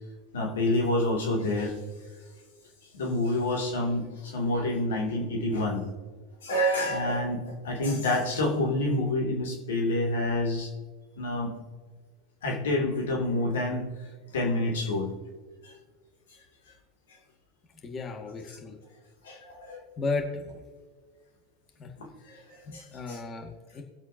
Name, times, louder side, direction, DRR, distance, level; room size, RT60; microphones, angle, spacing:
voice 1, 0.3-1.8 2.9-5.8 6.4-10.7 11.2-11.5 12.4-13.9 14.3-15.1 15.6-15.7 19.2-19.8 22.0-23.2, left 1 dB, 80° left, 0 dB, 2.7 m, -28 dB
voice 2, 17.8-18.8 20.0-20.5 21.8-21.9 22.7-23.8, left 3 dB, 30° left, 2 dB, 2.0 m, -34 dB
21.5 x 7.8 x 2.8 m, 1.5 s
hypercardioid pair, 90°, 0 cm